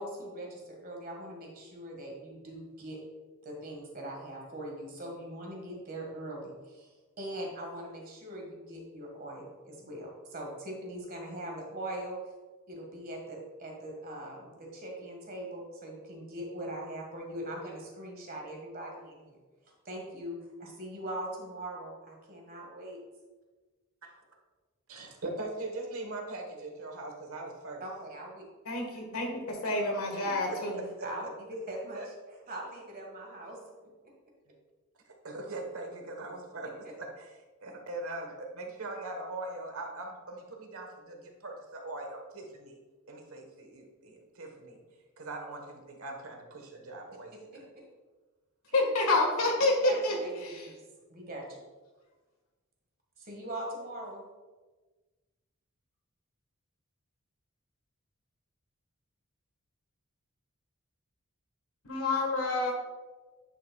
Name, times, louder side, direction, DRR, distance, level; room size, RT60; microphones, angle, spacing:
voice 1, 0.0-3.0 3.4-12.2 12.7-19.4 19.9-23.0 27.8-28.4 30.6-30.7 31.0-32.0 32.5-33.6 47.5-47.6 49.6-50.8 51.1-51.6 53.2-54.2, right 1 dB, 45° right, 0 dB, 1.6 m, -41 dB
voice 2, 24.9-27.8 30.2-31.1 31.9-32.1 35.2-37.3 37.6-42.8 43.1-44.8 45.2-47.6, right 2 dB, 80° right, 2 dB, 1.2 m, -41 dB
voice 3, 28.6-30.8 48.7-50.7 61.8-62.7, left 2 dB, 85° left, 2 dB, 1.5 m, -28 dB
10.0 x 5.5 x 2.3 m, 1.3 s
head